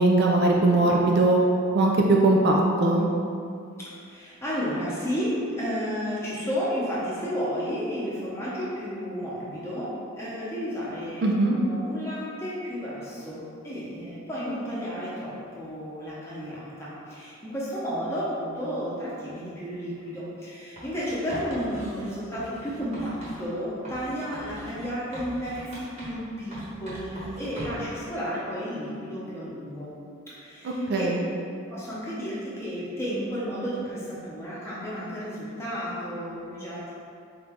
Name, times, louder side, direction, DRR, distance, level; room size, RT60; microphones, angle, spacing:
voice 1, 0.0-1.4 1.7-3.0 11.2-11.6 30.6-31.3, right 2 dB, 50° right, -1 dB, 0.4 m, -20 dB
voice 2, 3.8-29.9 30.3-31.1 31.7-36.9, equal, 10° left, -9 dB, 0.9 m, -32 dB
Writing, 20.8-23.4 23.8-26.3 26.5-27.9, equal, 35° right, 1.1 m, -41 dB
4.4 x 2.6 x 3.5 m, 2.4 s
head